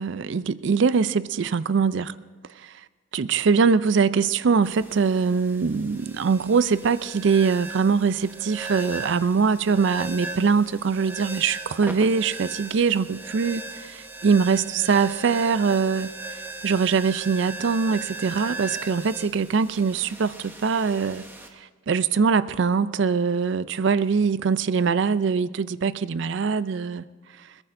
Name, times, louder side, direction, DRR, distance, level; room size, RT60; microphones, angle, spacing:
voice 1, 0.0-2.1 2.6-2.7 3.1-16.1 16.6-21.3 21.9-27.0, right 5 dB, 60° right, 16 dB, 0.4 m, -22 dB
sound 1, 4.6-21.5, right 2 dB, 10° right, 1.0 m, -38 dB
21.5 x 20.0 x 2.6 m, 1.4 s
head